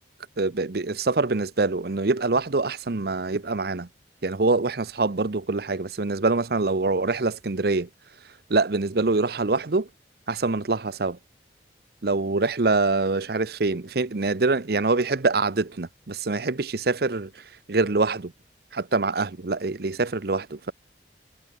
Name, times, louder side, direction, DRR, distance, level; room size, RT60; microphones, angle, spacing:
voice 1, 0.4-3.9 4.2-7.9 8.5-9.9 10.3-11.2 12.0-18.3 18.7-20.7, right 3 dB, 55° right, 0.8 m, -25 dB
head